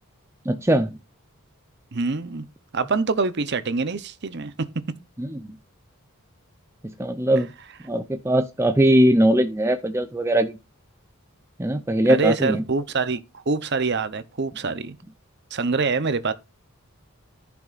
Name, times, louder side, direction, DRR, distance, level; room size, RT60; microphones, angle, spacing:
voice 1, 0.5-0.9 5.2-5.4 7.0-7.5 7.9-10.6 11.6-12.6, right 1 dB, 10° right, 0.5 m, -20 dB
voice 2, 1.9-2.5 2.7-4.5 12.0-15.0 15.5-16.3, right 4 dB, 50° right, 0.7 m, -25 dB
14.5 x 5.9 x 2.5 m
head